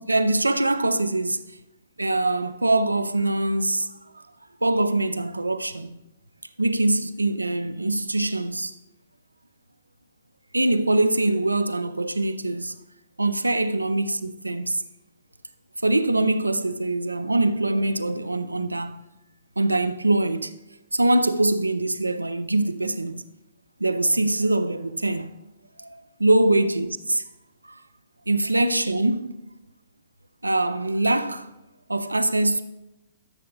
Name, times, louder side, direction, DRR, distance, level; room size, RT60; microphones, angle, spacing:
voice 1, 0.1-1.4 2.0-3.9 4.1-4.2 4.6-6.0 6.6-8.7 10.5-12.8 13.2-14.8 15.8-19.0 19.6-20.5 20.9-23.2 23.8-25.3 25.8-27.2 27.6-27.8 28.3-29.4 30.4-31.5 31.9-32.6, right 2 dB, 80° right, 0.5 m, -23 dB
14.0 x 7.5 x 2.3 m
figure-of-eight pair, 110°, 0 cm